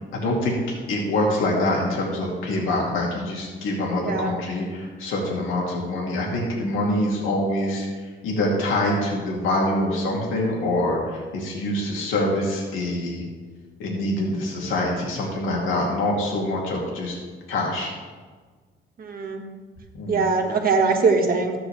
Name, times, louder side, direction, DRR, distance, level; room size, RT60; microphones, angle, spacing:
voice 1, 0.1-0.6 0.9-7.9 8.2-13.2 13.8-17.2 17.5-17.9 19.9-20.2, left 1 dB, 85° left, -2 dB, 2.2 m, -25 dB
voice 2, 4.0-4.3 19.0-19.4 20.1-21.5, right 4 dB, 50° right, 3 dB, 1.6 m, -21 dB
12.5 x 8.5 x 3.3 m, 1.5 s
cardioid pair, 90°, 20 cm